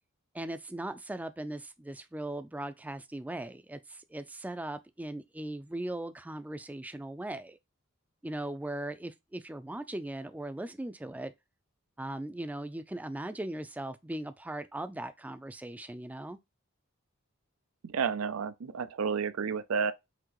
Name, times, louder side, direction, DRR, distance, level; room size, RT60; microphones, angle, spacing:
voice 1, 0.3-7.6 8.2-11.3 12.0-16.4, right 1 dB, 5° right, 0.3 m, -39 dB
voice 2, 17.8-19.9, right 6 dB, 90° right, 0.5 m, -31 dB
5.8 x 2.8 x 3.0 m
head